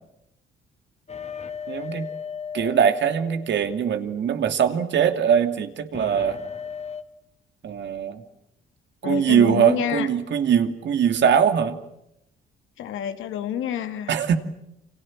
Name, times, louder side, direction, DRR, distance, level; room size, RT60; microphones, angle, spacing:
sound 1, 1.1-4.1 5.9-7.0, left 7 dB, 35° left, 1.9 m, -36 dB
voice 1, 1.7-2.1 2.5-6.4 7.6-8.2 9.0-11.8 14.1-14.4, right 8 dB, 65° right, 7 dB, 2.7 m, -21 dB
voice 2, 9.0-10.1 12.8-14.1, left 10 dB, 85° left, 8 dB, 2.4 m, -28 dB
29.5 x 26.5 x 7.4 m, 0.83 s
cardioid pair, 90°, 20 cm